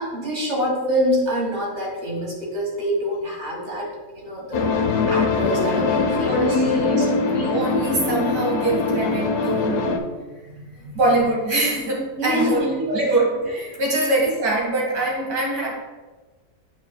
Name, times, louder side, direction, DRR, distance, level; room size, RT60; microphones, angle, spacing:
voice 1, 0.0-3.9 4.2-4.7 5.1-6.6 6.8-7.2 10.5-11.0 12.2-12.9 13.9-14.1, equal, 45° right, -3 dB, 2.1 m, -26 dB
sound 1, 4.5-10.0, left 4 dB, 90° left, 1.2 m, -22 dB
voice 2, 6.0-10.0 10.9-15.7, right 2 dB, 80° right, -2 dB, 2.2 m, -23 dB
9.2 x 5.4 x 2.2 m, 1.2 s
omnidirectional pair, 1.6 m